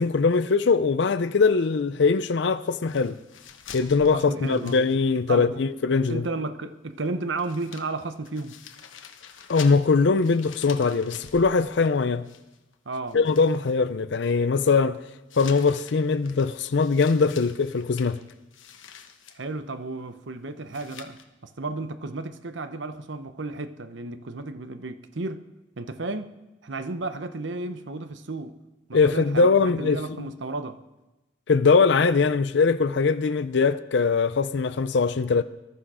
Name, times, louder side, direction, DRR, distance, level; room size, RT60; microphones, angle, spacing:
voice 1, 0.0-3.2 3.7-6.2 9.5-12.3 13.1-15.0 15.4-18.2 28.9-30.3 31.5-35.4, left 4 dB, 60° left, 0.5 m, -21 dB
sound 1, 2.9-5.5 5.7-5.8 7.0-7.1 7.4-12.8 13.1-13.7 15.3-19.4 20.7-21.2, left 8 dB, 85° left, 1.2 m, -46 dB
voice 2, 4.1-4.8 5.3-5.6 6.1-8.6 12.9-13.2 19.3-25.5 25.8-28.6 28.9-30.8, right 3 dB, 70° right, 0.9 m, -33 dB
20.0 x 12.5 x 4.9 m
head